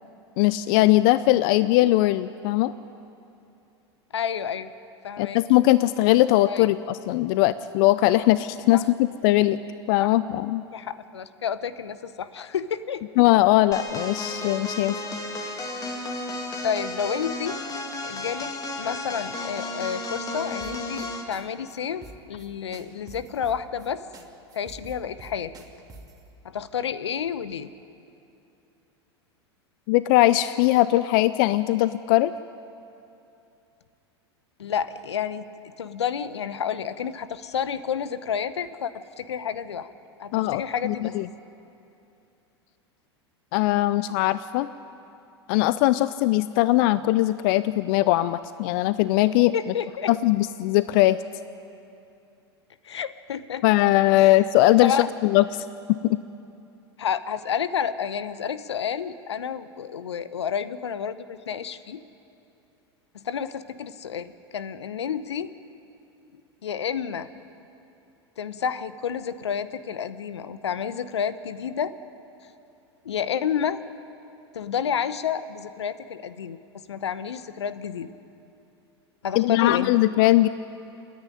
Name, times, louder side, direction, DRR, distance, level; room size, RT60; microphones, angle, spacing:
voice 1, 0.4-2.7 5.2-9.0 9.2-9.6 9.9-10.6 13.2-15.0 29.9-32.3 40.3-41.3 43.5-44.7 45.5-49.5 50.1-51.2 53.6-55.0 55.2-55.7 56.0-56.2 79.4-80.5, left 16 dB, 55° left, 15 dB, 0.5 m, -20 dB
voice 2, 4.1-4.7 5.0-5.4 6.5-6.7 8.7-8.8 10.0-10.1 10.7-13.0 16.6-17.6 18.0-24.0 24.5-25.5 26.4-27.7 34.6-35.5 35.8-39.9 40.2-41.2 49.5-50.1 52.8-53.6 54.2-54.4 54.8-55.1 57.0-62.0 63.2-65.5 66.6-67.3 68.4-71.9 73.0-73.8 74.5-76.6 76.9-78.1 79.2-79.9, left 8 dB, 80° left, 14 dB, 0.9 m, -30 dB
sound 1, 13.7-21.3, left 2 dB, 25° left, 2.6 m, -33 dB
sound 2, 20.6-21.1 21.3-21.4 21.7-21.8 22.0-22.5 22.7-23.9 24.1-24.2 24.5-26.2, right 3 dB, 25° right, 2.6 m, -45 dB
28.0 x 10.5 x 9.9 m, 2.8 s
hypercardioid pair, 90°, 14 cm